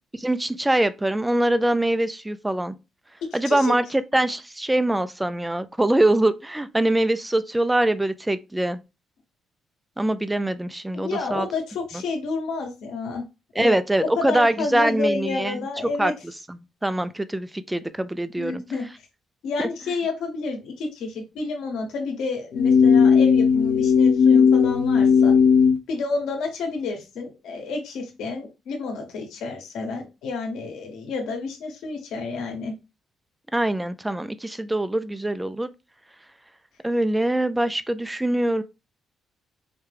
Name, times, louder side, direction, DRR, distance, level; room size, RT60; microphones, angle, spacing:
voice 1, 0.2-2.7 3.3-8.8 10.0-11.5 13.6-15.6 16.0-16.1 16.8-18.6 19.6-19.7 33.5-35.7 36.8-38.6, right 1 dB, 10° right, 0.3 m, -23 dB
voice 2, 3.2-3.7 10.9-13.2 13.5-13.8 14.2-16.1 18.3-18.9 19.4-25.3 25.9-32.7, left 4 dB, 85° left, 1.4 m, -30 dB
sound 1, 22.5-25.8, left 6 dB, 65° left, 0.7 m, -16 dB
4.8 x 2.2 x 3.4 m
cardioid pair, 125°, 0 cm